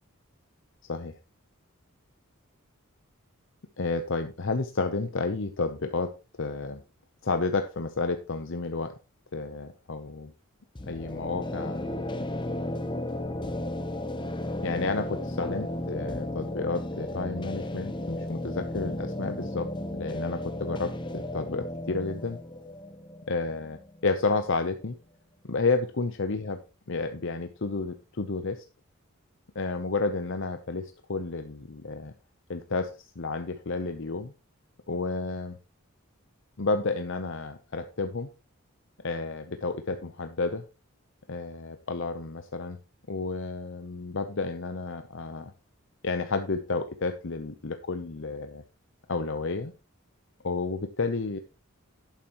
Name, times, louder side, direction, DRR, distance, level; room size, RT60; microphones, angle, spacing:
voice 1, 3.8-6.8 7.2-8.9 9.3-10.3 10.9-11.9 14.6-22.4 23.3-25.0 25.4-26.6 26.9-28.7 29.5-32.1 32.5-34.3 34.9-35.6 36.6-38.3 39.0-40.6 41.3-42.8 43.1-45.5 46.0-48.6 49.1-49.7 50.4-51.4, left 3 dB, 60° left, 7 dB, 0.8 m, -31 dB
sound 1, 10.8-24.4, left 1 dB, 20° left, 0.9 m, -34 dB
11.5 x 9.2 x 3.0 m, 0.31 s
head